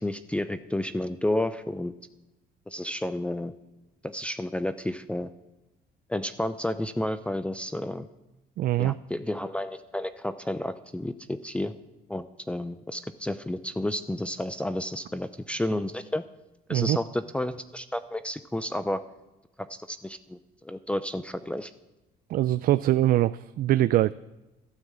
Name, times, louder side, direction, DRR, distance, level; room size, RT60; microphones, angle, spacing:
voice 1, 0.0-1.9 2.7-3.5 4.0-5.3 6.1-8.1 8.8-11.7 12.1-16.2 16.7-19.0 19.6-21.7, left 1 dB, 5° left, 11 dB, 0.6 m, -31 dB
voice 2, 8.6-9.0 16.7-17.0 22.3-24.1, right 14 dB, 60° right, 15 dB, 0.4 m, -23 dB
12.5 x 9.3 x 7.5 m, 0.99 s
cardioid pair, 110°, 17 cm